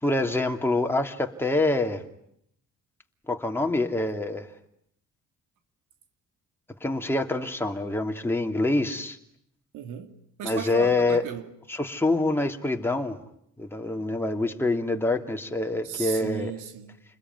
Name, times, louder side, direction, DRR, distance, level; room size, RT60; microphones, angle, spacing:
voice 1, 0.0-2.0 3.3-4.5 6.8-9.2 10.4-11.2 11.7-13.2 13.6-16.5, left 2 dB, 10° left, 2.9 m, -26 dB
voice 2, 9.7-11.5 15.8-17.0, right 8 dB, 90° right, 2.7 m, -36 dB
29.0 x 21.0 x 9.6 m
cardioid pair, 90°, 30 cm